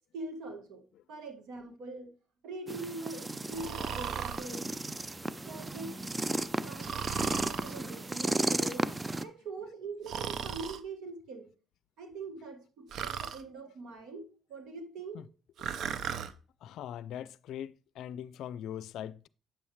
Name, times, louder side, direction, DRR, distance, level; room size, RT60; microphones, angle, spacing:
voice 1, 0.1-0.8 1.1-2.1 2.4-4.9 5.5-6.0 6.6-8.9 9.2-11.5 12.0-15.2, right 3 dB, 90° right, 1.9 m, -43 dB
sound 1, 2.7-9.2, right 2 dB, 20° right, 0.5 m, -34 dB
Breathing, 3.5-4.5 6.8-7.8 10.1-10.8 12.9-13.4 15.6-16.3, right 8 dB, 70° right, 0.6 m, -36 dB
voice 2, 16.6-19.3, left 10 dB, 80° left, 0.4 m, -41 dB
8.8 x 7.1 x 3.1 m
cardioid pair, 90°, 0 cm